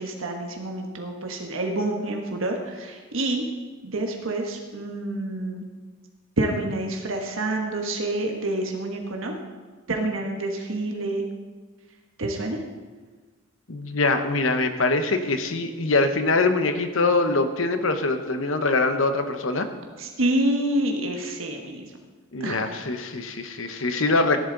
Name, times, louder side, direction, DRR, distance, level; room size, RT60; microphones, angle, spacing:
voice 1, 0.0-3.4 3.8-5.7 6.4-9.3 9.9-11.2 12.2-12.6 20.0-21.9 22.4-22.6, right 1 dB, 80° right, 2 dB, 1.3 m, -27 dB
voice 2, 13.7-19.7 22.3-24.4, left 3 dB, 80° left, 8 dB, 1.1 m, -23 dB
14.0 x 11.0 x 3.9 m, 1.4 s
head